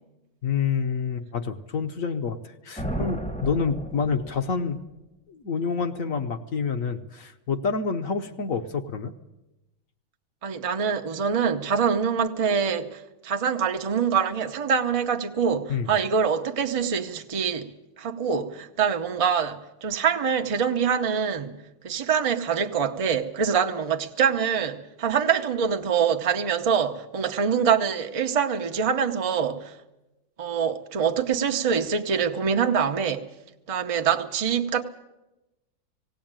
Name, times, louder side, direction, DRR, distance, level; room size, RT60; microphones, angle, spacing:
voice 1, 0.4-4.8 5.3-9.1 15.7-15.9, left 5 dB, 50° left, 1.1 m, -28 dB
sound 1, 2.8-4.7, right 1 dB, 5° left, 0.8 m, -33 dB
voice 2, 10.4-21.6 21.8-29.8 30.4-33.2 33.7-34.8, right 7 dB, 35° right, 0.5 m, -25 dB
18.5 x 17.5 x 8.9 m
omnidirectional pair, 2.1 m